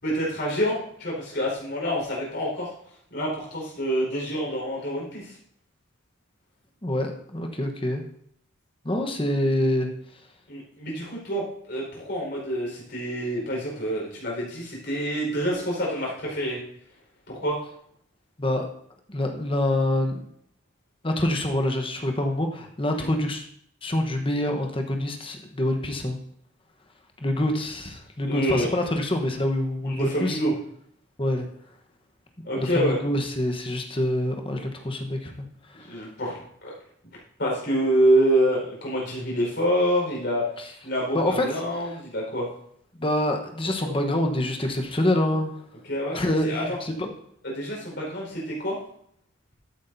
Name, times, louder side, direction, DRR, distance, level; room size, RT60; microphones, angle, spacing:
voice 1, 0.0-2.7 3.1-5.3 10.5-16.6 17.3-17.6 23.0-23.1 28.3-28.7 29.9-30.5 32.4-33.0 35.8-36.7 37.4-40.4 40.8-42.5 43.8-43.9 45.9-46.6 47.4-48.8, equal, 55° left, -3 dB, 4.8 m, -27 dB
voice 2, 6.8-8.0 8.8-9.9 18.4-18.7 19.1-20.1 21.0-23.4 23.8-26.2 27.2-30.4 31.2-31.5 32.6-35.4 35.7-35.9 41.1-41.5 43.0-45.5 46.1-47.1, left 1 dB, 25° left, 3 dB, 1.1 m, -26 dB
13.5 x 8.6 x 2.7 m, 0.67 s
head